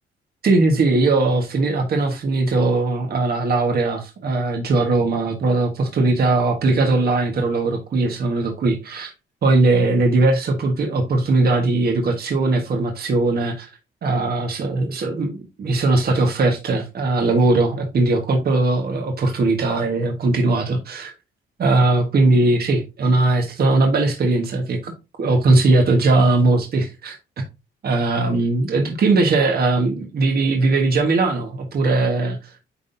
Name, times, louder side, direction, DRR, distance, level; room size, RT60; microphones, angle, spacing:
voice 1, 0.4-9.1 9.4-13.7 14.0-21.1 21.6-24.9 25.2-27.2 27.8-32.5, right 2 dB, 50° right, 1.4 m, -19 dB
9.8 x 3.8 x 2.7 m
cardioid pair, 90°, 20 cm